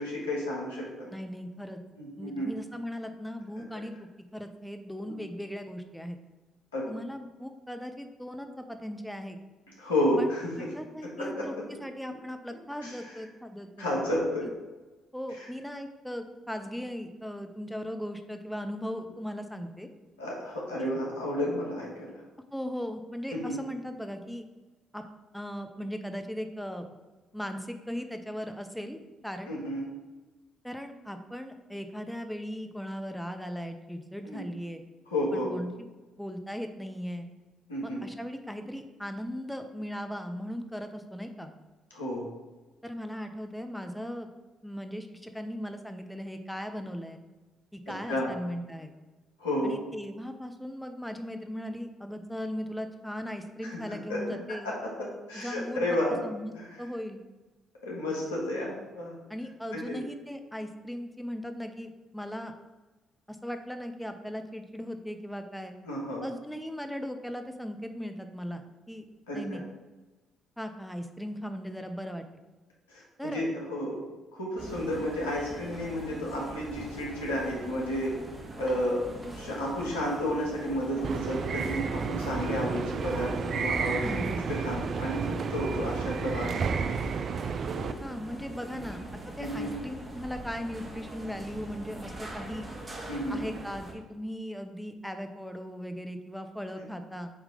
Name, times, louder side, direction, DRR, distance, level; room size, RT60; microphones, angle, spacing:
voice 1, 0.0-1.1 2.0-2.5 5.1-5.2 6.7-6.9 9.8-10.7 11.2-11.6 12.8-13.1 13.8-14.5 15.4-15.5 20.2-22.2 23.3-23.5 29.5-29.9 34.2-34.4 35.1-35.5 37.7-38.0 41.9-42.2 47.9-48.3 49.4-49.8 53.6-53.8 54.1-54.2 54.6-56.2 56.6-56.7 57.8-59.1 59.7-60.0 65.8-66.3 69.3-69.6 72.9-74.0 74.3-78.1 78.6-79.0 79.3-84.2 84.5-86.7 86.9-87.2 87.8-87.9 88.7-88.8 89.4-89.7 93.1-93.4, left 1 dB, 90° left, -4 dB, 1.6 m, -32 dB
voice 2, 1.1-1.8 2.2-3.9 4.3-6.2 6.9-9.4 10.2-11.5 11.8-13.8 15.1-19.9 20.8-20.9 22.5-24.5 24.9-25.0 25.3-26.9 27.3-29.5 30.6-34.8 35.3-35.9 36.2-37.3 37.8-41.5 42.8-44.3 44.6-47.2 47.7-48.9 49.6-54.7 55.3-56.0 56.2-56.5 56.8-57.2 59.3-62.5 63.3-65.7 66.2-69.1 69.3-69.6 70.6-72.4 73.2-73.4 84.0-84.5 88.0-92.7 93.3-97.3, equal, 5° left, 6 dB, 0.7 m, -38 dB
sound 1, 74.6-93.9, right 1 dB, 30° right, 1.7 m, -43 dB
sound 2, 81.0-87.9, right 5 dB, 55° right, 0.4 m, -31 dB
7.4 x 3.2 x 5.0 m, 1.2 s
hypercardioid pair, 45°, 0 cm